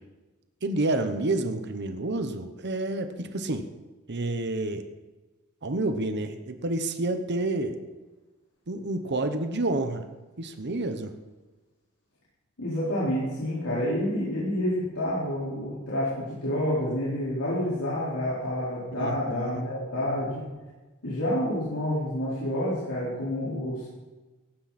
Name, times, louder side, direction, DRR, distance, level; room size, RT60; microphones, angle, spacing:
voice 1, 0.6-3.7 4.1-4.8 5.6-7.8 8.7-10.1 10.4-11.1 19.0-19.6, right 2 dB, 55° right, 7 dB, 1.1 m, -29 dB
voice 2, 12.6-20.4 21.0-23.9, left 1 dB, 85° left, -10 dB, 4.7 m, -28 dB
17.5 x 15.5 x 4.3 m, 1.2 s
head